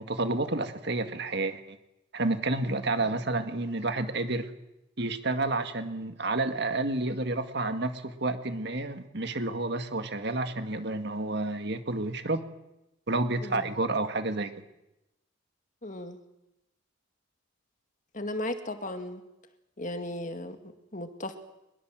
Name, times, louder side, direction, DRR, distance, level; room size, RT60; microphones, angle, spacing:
voice 1, 0.0-1.8 2.1-4.5 5.0-12.4 13.1-14.5, right 2 dB, 55° right, 8 dB, 2.0 m, -30 dB
voice 2, 15.8-16.2 18.1-19.2 19.8-21.4, left 1 dB, 40° left, 7 dB, 2.1 m, -36 dB
25.0 x 22.0 x 7.6 m, 0.90 s
head